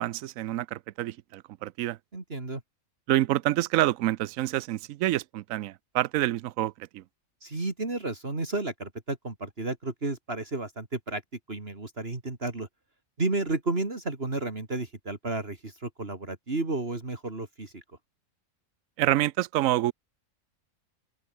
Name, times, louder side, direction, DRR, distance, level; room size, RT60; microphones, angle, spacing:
voice 1, 0.0-2.0 3.1-7.0 19.0-19.9, right 15 dB, 85° right, 1.0 m, -27 dB
voice 2, 2.1-2.6 7.4-11.2 11.5-12.7 13.2-17.8, right 2 dB, 50° right, 3.3 m, -32 dB
open air
omnidirectional pair, 1.4 m